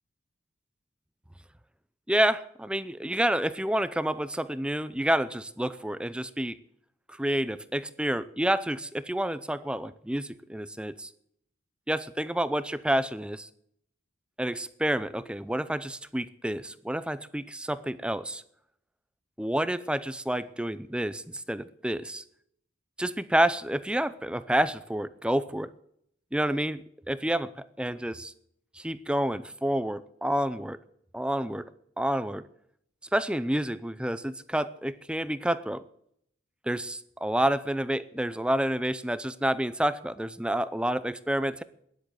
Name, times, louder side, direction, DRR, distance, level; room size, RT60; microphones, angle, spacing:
voice 1, 2.1-6.6 7.1-11.1 11.9-13.5 14.4-18.4 19.4-22.2 23.0-25.7 26.3-28.3 28.7-30.8 31.1-31.7 32.0-32.5 33.1-35.8 36.7-41.6, right 1 dB, 5° right, 15 dB, 0.5 m, -29 dB
13.0 x 10.5 x 9.1 m, 0.71 s
head